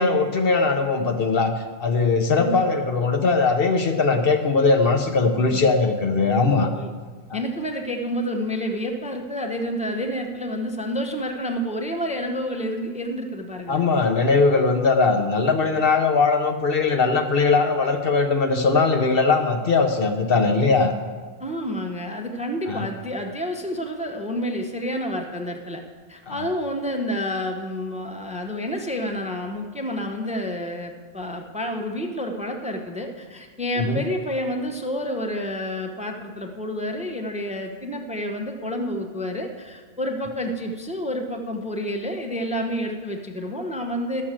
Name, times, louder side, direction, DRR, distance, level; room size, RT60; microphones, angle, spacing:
voice 1, 0.0-1.5 1.8-6.7 7.3-7.4 13.7-20.9 22.7-22.9 26.3-26.5 33.8-34.0, left 4 dB, 55° left, 5 dB, 0.9 m, -20 dB
voice 2, 7.3-13.8 21.4-25.8 26.1-44.2, equal, 5° right, 3 dB, 0.8 m, -29 dB
11.5 x 6.4 x 7.4 m, 1.5 s
omnidirectional pair, 1.2 m